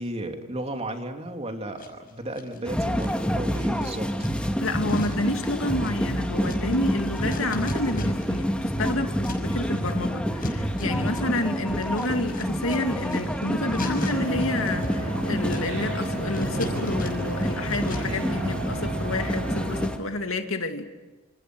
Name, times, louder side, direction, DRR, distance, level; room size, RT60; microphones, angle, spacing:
voice 1, 0.0-4.1, right 1 dB, 30° right, 5 dB, 2.9 m, -34 dB
sound 1, 1.8-2.6 3.0-8.4 8.7-18.3, left 1 dB, 45° left, 5.7 m, -38 dB
sound 2, 2.6-20.0, equal, 5° left, 2.2 m, -28 dB
voice 2, 4.6-20.9, left 2 dB, 75° left, 6 dB, 2.5 m, -29 dB
sound 3, 14.1-19.9, right 1 dB, 75° right, 5.0 m, -34 dB
28.5 x 27.5 x 6.3 m, 1.2 s
head